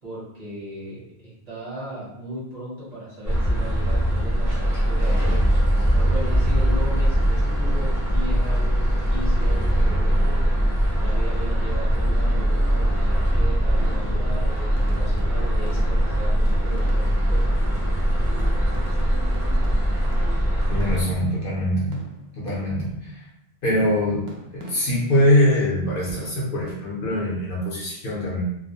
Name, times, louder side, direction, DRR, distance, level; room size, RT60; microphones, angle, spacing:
voice 1, 0.0-5.4 5.9-17.4, right 1 dB, 40° right, -9 dB, 1.0 m, -36 dB
sound 1, 3.2-21.0, equal, 5° right, 0.7 m, -21 dB
sound 2, 14.7-17.4 17.8-21.6 21.9-23.0 24.3-25.2, equal, 55° right, 0.6 m, -44 dB
voice 2, 20.7-22.0 22.4-23.3 23.6-28.4, left 1 dB, 60° left, -5 dB, 0.8 m, -23 dB
2.3 x 2.0 x 2.7 m, 0.81 s
omnidirectional pair, 1.1 m